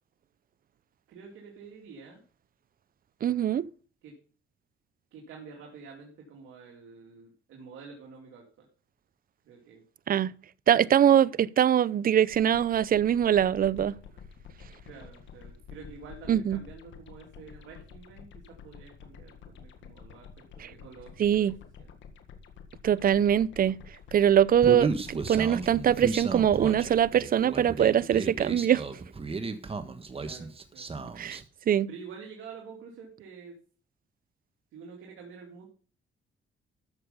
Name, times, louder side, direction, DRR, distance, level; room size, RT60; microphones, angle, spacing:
voice 1, 1.1-2.2 4.0-4.1 5.1-8.7 9.4-9.8 14.9-20.3 20.5-21.5 21.8-21.9 30.2-30.9 31.9-33.6 34.7-35.7, right 5 dB, 85° right, 2.6 m, -48 dB
voice 2, 3.2-3.6 10.1-10.3 10.7-13.9 16.3-16.6 21.2-21.5 22.8-23.8 24.1-28.8 31.2-31.4 31.7-31.9, right 9 dB, 45° right, 0.5 m, -23 dB
sound 1, 12.3-27.1, left 6 dB, 75° left, 1.8 m, -49 dB
Human voice, 24.6-31.4, right 4 dB, 30° right, 1.4 m, -34 dB
13.5 x 7.0 x 5.2 m
cardioid pair, 90°, 20 cm